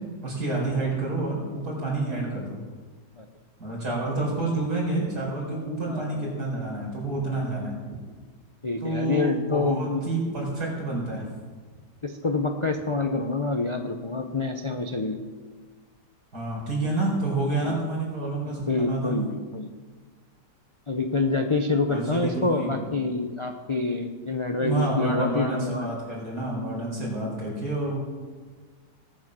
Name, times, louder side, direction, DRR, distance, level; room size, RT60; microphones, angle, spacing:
voice 1, 0.2-2.6 3.6-7.7 8.8-11.2 16.3-19.2 21.9-22.9 24.6-28.0, right 2 dB, 65° right, -3 dB, 5.0 m, -29 dB
voice 2, 5.9-6.3 8.6-10.0 12.0-15.2 17.6-17.8 18.7-19.7 20.9-25.9, left 3 dB, 45° left, 5 dB, 0.3 m, -27 dB
19.0 x 7.5 x 6.1 m, 1.4 s
omnidirectional pair, 1.9 m